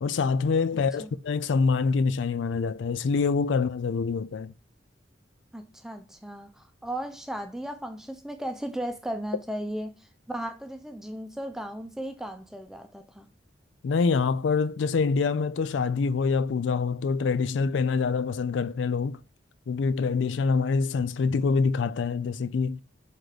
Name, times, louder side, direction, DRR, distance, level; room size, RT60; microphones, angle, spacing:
voice 1, 0.0-4.5 13.8-19.2 19.7-22.8, left 5 dB, 75° left, 0.4 m, -25 dB
voice 2, 5.5-10.0 10.3-13.3, right 1 dB, 5° right, 0.7 m, -36 dB
4.6 x 4.1 x 4.9 m
head